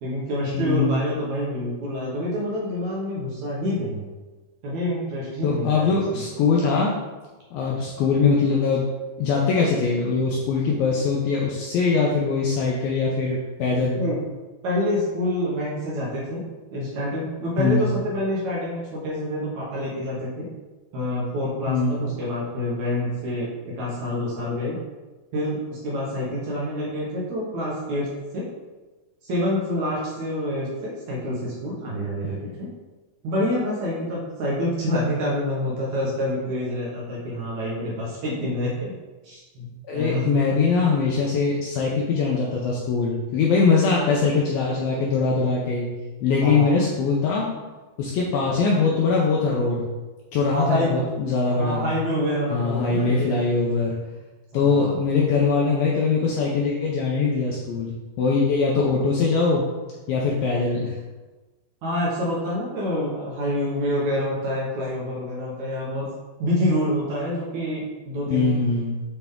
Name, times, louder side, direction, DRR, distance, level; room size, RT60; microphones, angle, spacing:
voice 1, 0.0-4.1 4.6-6.2 7.7-7.8 13.7-14.2 14.6-16.4 16.7-20.5 20.9-24.8 25.3-28.5 29.2-32.7 33.2-38.9 39.2-39.7 39.9-40.6 46.4-46.7 50.5-51.0 51.5-53.3 54.5-54.9 61.8-66.1 66.4-68.6, left 1 dB, 70° right, -6 dB, 1.8 m, -27 dB
voice 2, 0.5-1.0 5.4-6.9 7.5-8.9 9.2-14.0 17.6-17.9 21.7-22.1 39.9-45.9 46.2-47.5 48.0-49.9 50.3-51.9 52.5-54.0 54.5-59.7 60.1-60.9 68.3-69.0, left 4 dB, 80° left, -3 dB, 2.1 m, -22 dB
8.2 x 3.4 x 3.6 m, 1.2 s
omnidirectional pair, 4.9 m